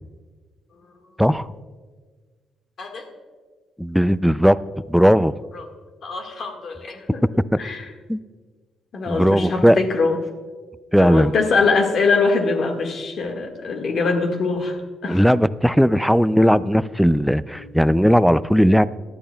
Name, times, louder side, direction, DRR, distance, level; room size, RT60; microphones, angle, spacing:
voice 1, 2.8-3.1 6.0-7.2 7.6-7.8 8.9-10.2 11.0-15.3 17.6-17.7, left 4 dB, 55° left, 4 dB, 1.7 m, -23 dB
voice 2, 3.8-4.6 4.9-5.3 7.5-7.6 8.1-8.2 9.1-9.8 10.9-11.3 15.1-18.9, equal, ahead, 17 dB, 0.3 m, -17 dB
19.0 x 12.0 x 2.3 m, 1.5 s
cardioid pair, 90°, 0 cm